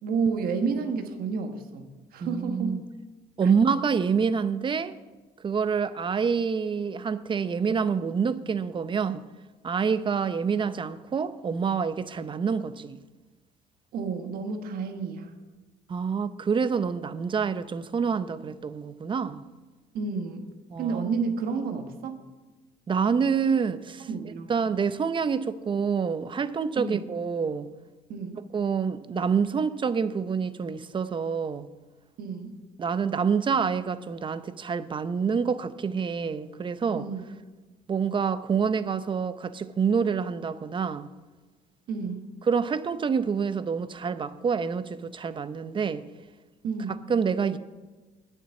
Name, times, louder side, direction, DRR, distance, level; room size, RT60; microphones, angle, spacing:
voice 1, 0.0-2.8 3.4-3.5 13.9-15.3 19.9-20.4 20.8-22.2 24.1-24.5 26.8-27.0 28.1-28.4 32.2-32.5 36.9-37.2 41.9-42.3 46.6-47.0, right 5 dB, 70° right, 1.4 m, -30 dB
voice 2, 2.2-2.8 3.4-5.0 5.4-9.2 9.6-13.0 15.9-19.4 20.7-21.2 22.9-24.1 24.5-27.7 28.5-31.7 32.8-37.1 37.9-41.1 42.5-46.0 47.1-47.6, right 6 dB, 30° right, 0.6 m, -27 dB
9.3 x 7.1 x 8.1 m
cardioid pair, 90°, 16 cm